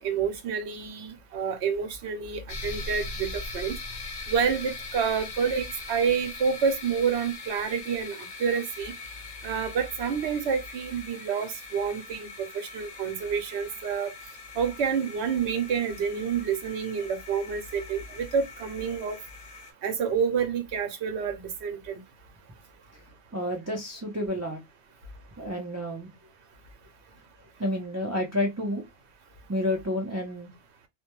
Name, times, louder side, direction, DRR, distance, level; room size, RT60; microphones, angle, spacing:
voice 1, 0.0-3.8 4.3-8.9 9.4-14.1 14.6-19.2 19.8-22.0, right 6 dB, 80° right, 1.0 m, -28 dB
sound 1, 2.5-19.7, left 3 dB, 55° left, 0.8 m, -41 dB
voice 2, 23.3-24.6 25.4-26.1 27.6-28.8 29.5-30.5, left 1 dB, 25° right, 0.3 m, -30 dB
2.2 x 2.1 x 2.9 m
omnidirectional pair, 1.1 m